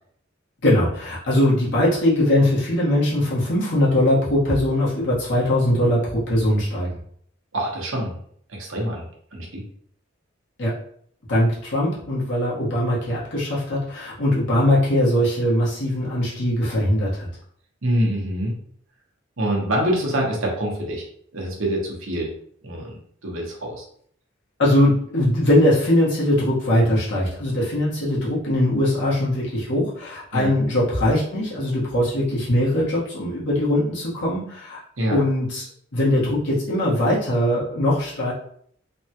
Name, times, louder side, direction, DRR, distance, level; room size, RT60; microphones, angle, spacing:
voice 1, 0.6-6.9 10.6-10.7 11.3-17.3 24.6-34.8 35.1-35.6 35.9-38.3, left 1 dB, 65° left, -7 dB, 1.3 m, -21 dB
voice 2, 7.5-8.2 8.5-9.1 9.3-9.6 17.8-18.5 19.4-21.1 21.3-22.3 22.6-23.8 30.3-30.5 35.0-35.2, right 1 dB, 85° right, -1 dB, 1.0 m, -25 dB
3.4 x 2.2 x 2.8 m, 0.63 s
head